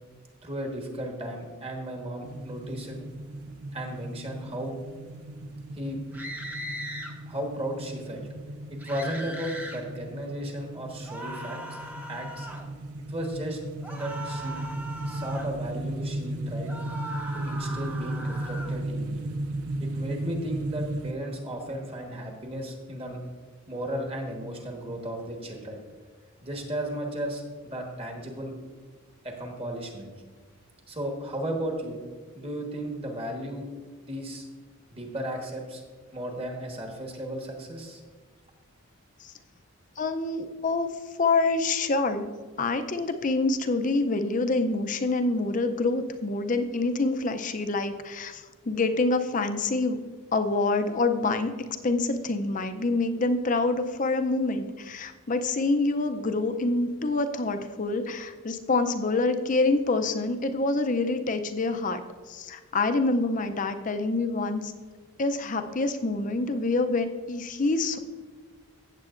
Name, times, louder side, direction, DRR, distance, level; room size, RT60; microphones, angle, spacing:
voice 1, 0.4-3.0 3.7-4.7 5.7-6.0 7.2-8.3 8.7-11.6 12.1-12.5 13.0-13.6 13.9-14.7 15.0-16.7 17.3-19.2 19.8-23.2 23.7-25.8 26.4-28.5 29.2-30.1 30.9-32.0 32.3-33.6 34.0-34.5 34.9-35.8 36.1-38.0, right 1 dB, 25° right, 1 dB, 1.3 m, -35 dB
sound 1, 2.2-21.1, right 1 dB, 80° right, 0.5 m, -36 dB
sound 2, 6.1-7.1 8.8-9.8 11.1-12.7 13.8-15.5 16.6-18.8, right 1 dB, 10° right, 0.7 m, -39 dB
voice 2, 40.0-42.3 42.6-50.0 50.3-51.5 51.8-62.0 62.3-64.7 65.2-68.0, left 3 dB, 35° left, 8 dB, 0.5 m, -26 dB
15.5 x 7.6 x 2.5 m, 1.5 s
head